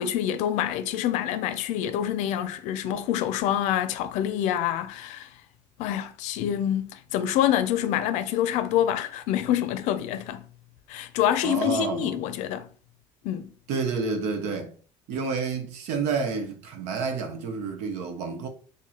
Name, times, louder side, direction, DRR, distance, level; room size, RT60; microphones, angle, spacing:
voice 1, 0.0-5.3 5.8-10.5 10.9-12.7 13.2-13.5, left 11 dB, 75° left, 0.5 m, -26 dB
voice 2, 11.4-12.2 13.7-14.7 15.1-18.5, right 5 dB, 70° right, 0.8 m, -29 dB
2.9 x 2.6 x 4.0 m
cardioid pair, 165°, 12 cm